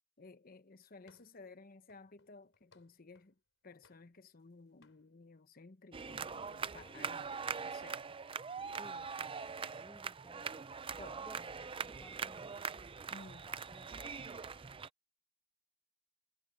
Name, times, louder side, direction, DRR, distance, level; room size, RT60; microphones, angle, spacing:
voice 1, 0.2-3.4 3.6-8.0 11.0-11.2 13.1-13.5, left 3 dB, 50° left, 1.0 m, -56 dB
sound 1, 1.1-1.5 1.9-3.4 3.8-4.5 4.8-5.1, left 4 dB, 80° left, 4.1 m, -70 dB
sound 2, 5.9-14.9, right 5 dB, 25° right, 0.5 m, -42 dB
voice 2, 8.8-10.7 11.1-12.5 13.3-14.3, equal, 5° left, 1.2 m, -59 dB
head